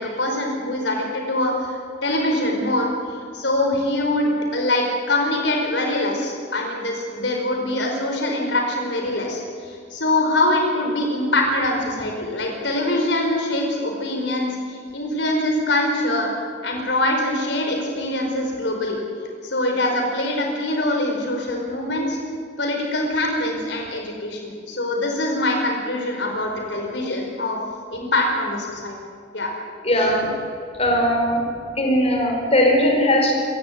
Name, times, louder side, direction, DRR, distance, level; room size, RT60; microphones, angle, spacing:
voice 1, 0.0-2.9 3.3-16.3 16.6-19.0 19.4-22.2 22.6-27.6 27.9-29.0 29.3-29.5 30.0-30.1, left 1 dB, 70° left, 1 dB, 4.9 m, -23 dB
voice 2, 29.8-30.3 30.8-31.4 31.8-33.3, equal, 35° left, 0 dB, 4.9 m, -18 dB
26.0 x 15.5 x 9.4 m, 2.2 s
head